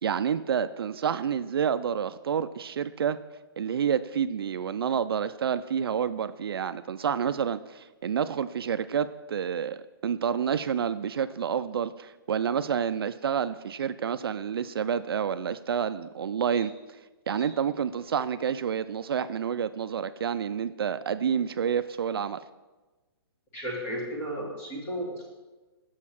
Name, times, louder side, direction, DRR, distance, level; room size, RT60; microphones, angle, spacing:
voice 1, 0.0-3.2 3.6-16.7 17.3-22.4, right 7 dB, 70° right, 13 dB, 0.4 m, -29 dB
voice 2, 23.5-25.3, equal, 15° left, -3 dB, 1.4 m, -34 dB
6.4 x 6.3 x 5.8 m, 1.2 s
hypercardioid pair, 175°, 13 cm